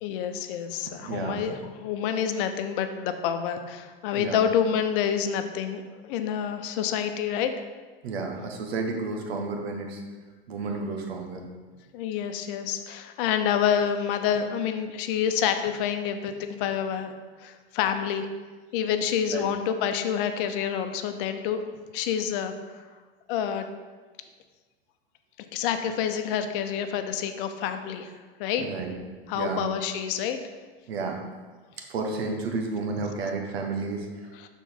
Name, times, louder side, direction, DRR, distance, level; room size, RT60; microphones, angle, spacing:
voice 1, 0.0-7.7 10.7-11.0 11.9-17.1 17.4-18.3 18.7-21.6 21.9-22.5 23.3-23.7 25.5-28.1 28.4-28.6 29.3-30.4 34.4-34.5, left 8 dB, 55° left, 8 dB, 0.9 m, -28 dB
voice 2, 1.0-1.4 4.1-4.4 8.0-10.0 10.5-11.4 19.3-19.5 28.6-29.0 29.3-29.7 30.9-31.2 31.8-34.5, right 3 dB, 70° right, 3 dB, 1.3 m, -31 dB
12.0 x 4.2 x 3.9 m, 1.4 s
hypercardioid pair, 95°, 32 cm